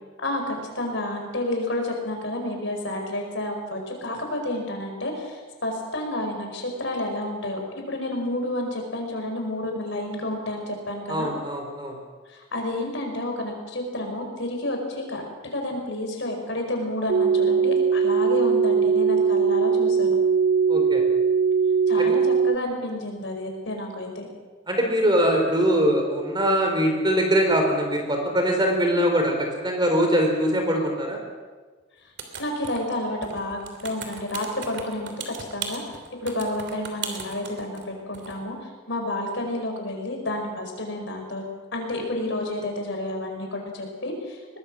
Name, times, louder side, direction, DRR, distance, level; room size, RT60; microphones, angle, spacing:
voice 1, 0.2-7.6 7.9-11.3 12.3-15.2 15.5-20.1 21.9-24.3 32.4-38.6 38.9-41.4 41.7-44.4, left 1 dB, 60° left, 3 dB, 5.0 m, -30 dB
voice 2, 11.1-11.9 20.7-21.0 22.0-22.1 24.7-31.2, equal, 20° right, 3 dB, 3.9 m, -22 dB
sound 1, 17.1-22.6, right 5 dB, 70° right, 0.6 m, -20 dB
sound 2, 32.2-32.9 33.2-37.9 38.1-38.4, right 6 dB, 55° right, 3.0 m, -36 dB
23.0 x 19.5 x 6.3 m, 1.4 s
head